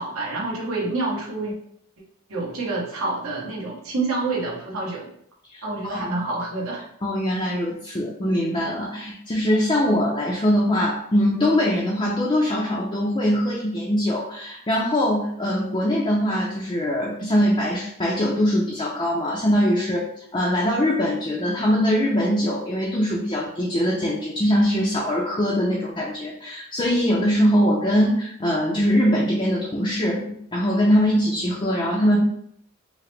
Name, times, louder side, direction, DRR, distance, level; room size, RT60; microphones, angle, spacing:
voice 1, 0.0-1.5 2.3-5.1 5.6-6.8, right 2 dB, 70° right, -4 dB, 1.3 m, -27 dB
voice 2, 5.5-6.1 7.0-32.2, equal, 20° left, -4 dB, 0.5 m, -22 dB
4.7 x 2.1 x 3.3 m, 0.67 s
head